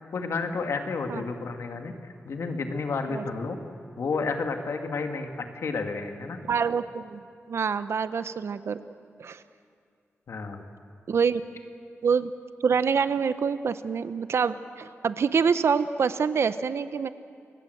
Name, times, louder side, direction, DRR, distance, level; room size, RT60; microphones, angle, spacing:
voice 1, 0.1-3.6 4.0-6.4 10.3-10.7, left 4 dB, 70° left, 5 dB, 1.9 m, -31 dB
voice 2, 6.5-7.2 7.5-8.8 9.2-9.4 11.1-11.4 12.0-12.3 12.6-17.1, right 6 dB, 65° right, 13 dB, 0.7 m, -26 dB
29.0 x 17.0 x 7.8 m, 2.4 s
wide cardioid pair, 170°, 5 cm